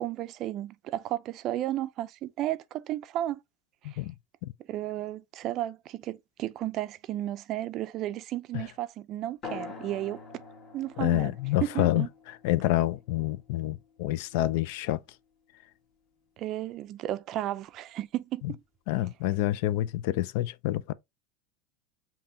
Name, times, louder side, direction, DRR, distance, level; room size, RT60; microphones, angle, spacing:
voice 1, 0.0-3.4 3.8-4.0 4.7-10.2 10.7-11.3 11.6-12.1 16.4-18.6, right 13 dB, 40° right, 0.4 m, -33 dB
voice 2, 3.8-4.1 4.4-4.5 8.5-8.6 11.0-12.1 12.4-15.0 18.9-20.9, left 15 dB, 65° left, 0.4 m, -27 dB
sound 1, 9.4-14.5, left 5 dB, 35° left, 1.4 m, -46 dB
5.4 x 2.9 x 2.6 m
supercardioid pair, 140°, 0 cm